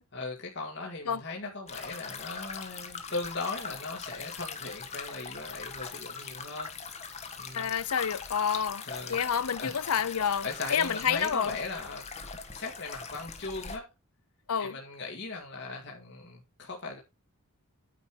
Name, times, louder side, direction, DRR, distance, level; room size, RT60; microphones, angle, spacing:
voice 1, 0.1-6.7 7.4-7.7 8.8-9.2 9.6-9.8 10.4-12.0 12.5-13.9 14.6-17.0, left 3 dB, 50° left, 1.8 m, -38 dB
sound 1, 1.7-13.8, left 5 dB, 30° left, 1.3 m, -41 dB
voice 2, 7.5-11.5 14.5-14.8, left 7 dB, 85° left, 0.7 m, -29 dB
9.4 x 5.3 x 4.7 m
head